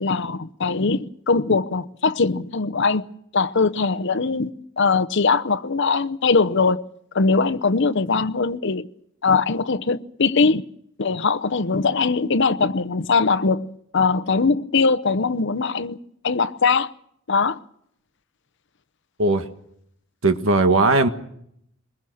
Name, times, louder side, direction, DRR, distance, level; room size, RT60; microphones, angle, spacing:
voice 1, 0.0-3.0 3.3-6.8 7.1-8.9 9.2-10.6 11.0-16.0 16.2-16.9 17.3-17.6, left 4 dB, 60° left, 0.8 m, -21 dB
voice 2, 20.2-21.1, right 2 dB, 70° right, 1.6 m, -18 dB
24.5 x 21.0 x 6.4 m
head